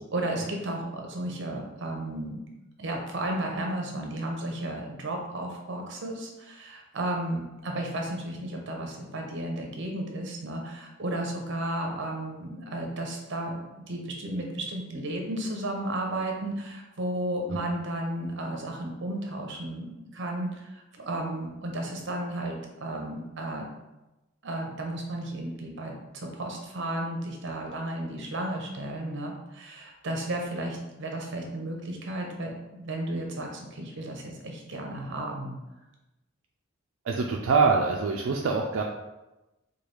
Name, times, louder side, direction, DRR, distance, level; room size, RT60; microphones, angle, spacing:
voice 1, 0.1-2.4 2.8-23.7 24.4-35.6, right 1 dB, 65° right, 1 dB, 0.7 m, -33 dB
voice 2, 37.1-38.8, right 4 dB, 85° right, 1 dB, 0.4 m, -24 dB
4.6 x 2.3 x 3.3 m, 1.0 s
head